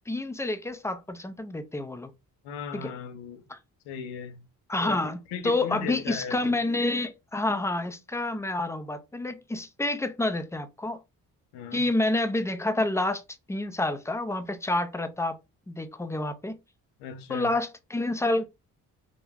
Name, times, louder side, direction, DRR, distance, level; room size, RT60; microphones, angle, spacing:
voice 1, 0.0-2.1 2.7-2.9 3.5-3.6 4.7-11.0 11.7-13.2 13.5-15.4 15.7-16.6 17.3-18.5, left 2 dB, 5° left, 0.4 m, -28 dB
voice 2, 2.4-3.4 3.8-4.5 4.8-5.0 5.3-6.6 11.5-11.9 17.0-17.5, left 7 dB, 90° left, 0.6 m, -37 dB
2.4 x 2.1 x 3.2 m
supercardioid pair, 55°, 40 cm